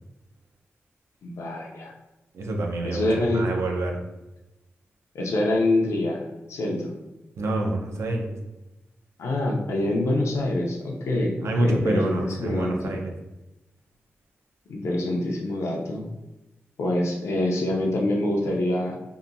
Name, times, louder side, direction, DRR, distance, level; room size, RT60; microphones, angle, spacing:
voice 1, 1.2-1.9 2.8-3.5 5.1-6.9 9.2-12.9 14.7-16.1 16.8-19.0, left 1 dB, 90° left, 0 dB, 0.5 m, -25 dB
voice 2, 2.3-4.0 7.4-8.3 11.4-13.1, right 1 dB, 80° right, 1 dB, 0.5 m, -27 dB
2.8 x 2.2 x 2.5 m, 1.0 s
wide cardioid pair, 125°, 5 cm